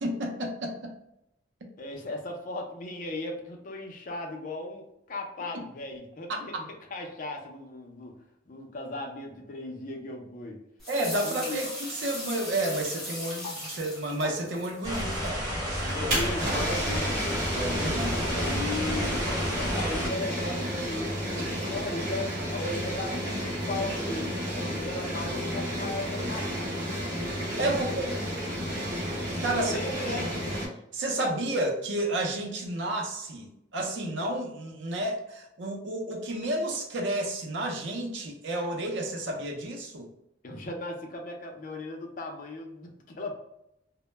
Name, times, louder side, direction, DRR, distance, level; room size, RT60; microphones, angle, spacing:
voice 1, 0.0-0.9 6.3-6.4 10.9-16.1 16.5-16.7 17.5-18.4 27.6-28.1 29.4-29.8 30.1-30.2 30.9-40.1, right 1 dB, 85° right, 2 dB, 0.6 m, -31 dB
voice 2, 1.8-8.2 8.5-10.6 11.2-11.6 15.9-17.4 18.3-19.3 19.6-26.9 27.7-28.0 29.5-30.4 40.4-43.3, left 2 dB, 50° left, 2 dB, 0.5 m, -37 dB
sound 1, 10.8-15.3, left 1 dB, ahead, 0.9 m, -38 dB
sound 2, 14.8-20.1, equal, 20° right, 1.0 m, -31 dB
sound 3, 15.8-30.7, equal, 50° right, 0.9 m, -31 dB
2.1 x 2.0 x 3.1 m, 0.82 s
head